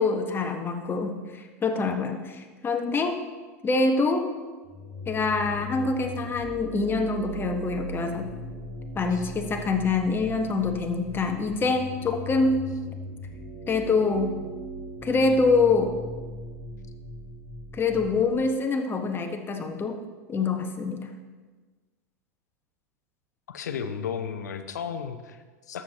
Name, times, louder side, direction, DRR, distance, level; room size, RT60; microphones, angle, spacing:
voice 1, 0.0-3.2 3.6-4.3 5.1-8.3 8.9-12.7 13.7-14.3 15.0-16.0 17.7-20.0 20.3-21.1, left 3 dB, 25° left, 4 dB, 1.2 m, -25 dB
sound 1, 4.6-18.3, equal, 10° right, 2.6 m, -39 dB
voice 2, 23.5-25.8, left 7 dB, 80° left, 9 dB, 0.7 m, -34 dB
13.0 x 7.3 x 2.9 m, 1.4 s
hypercardioid pair, 90°, 9 cm